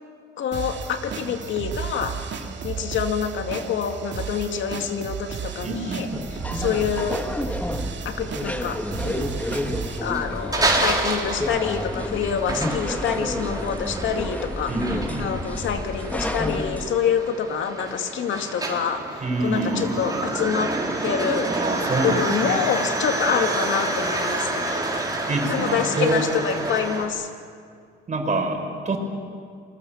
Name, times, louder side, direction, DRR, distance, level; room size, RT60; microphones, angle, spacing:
voice 1, 0.4-2.2 2.6-7.2 8.0-9.3 10.0-14.7 15.2-19.0 19.4-20.7 21.0-21.5 22.0-24.9 25.5-27.3, left 7 dB, 75° left, 6 dB, 2.3 m, -26 dB
sound 1, 0.5-10.1, right 6 dB, 65° right, 2.6 m, -34 dB
voice 2, 5.6-6.1 14.7-15.3 19.2-20.0 21.5-22.6 25.3-26.3 28.1-29.0, right 2 dB, 35° right, 3 dB, 5.7 m, -26 dB
sound 2, 6.1-16.9, left 1 dB, 5° left, 1.6 m, -30 dB
sound 3, 10.1-27.0, right 2 dB, 20° right, 4.4 m, -28 dB
28.5 x 21.5 x 7.3 m, 2.2 s
cardioid pair, 90°, 20 cm